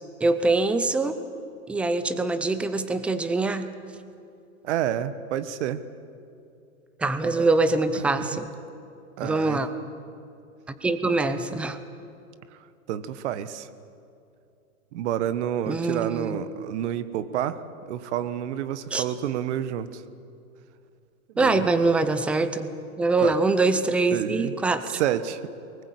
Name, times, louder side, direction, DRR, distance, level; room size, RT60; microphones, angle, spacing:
voice 1, 0.2-1.2 1.7-3.7 7.0-8.5 9.2-9.7 10.7-11.8 15.7-16.4 18.9-19.0 21.4-22.7 23.0-25.0, right 3 dB, 5° right, 11 dB, 0.5 m, -24 dB
voice 2, 4.6-5.8 7.2-7.5 7.9-8.4 9.2-9.6 12.9-13.7 14.9-17.6 17.9-20.0 21.3-21.9 23.2-23.4 24.1-24.5 24.9-25.4, right 10 dB, 50° right, 13 dB, 1.3 m, -29 dB
22.5 x 19.5 x 8.3 m, 2.6 s
hypercardioid pair, 130°, 43 cm